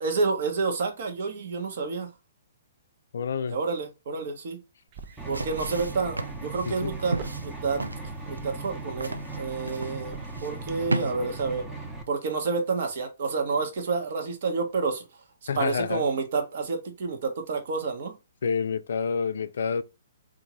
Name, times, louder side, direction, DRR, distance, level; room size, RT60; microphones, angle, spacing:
voice 1, 0.0-2.1 3.5-4.6 5.3-7.8 8.2-11.7 12.1-15.1 15.6-18.1, right 4 dB, 55° right, 1.0 m, -29 dB
voice 2, 3.1-3.6 6.7-7.0 15.5-16.1 18.4-19.8, left 6 dB, 65° left, 0.4 m, -28 dB
sound 1, 4.9-11.0, right 7 dB, 40° right, 0.5 m, -45 dB
sound 2, 5.0-11.1, right 2 dB, 90° right, 0.4 m, -35 dB
sound 3, 5.2-12.0, right 3 dB, 10° right, 0.8 m, -38 dB
3.7 x 2.6 x 2.9 m
figure-of-eight pair, 125°, 0 cm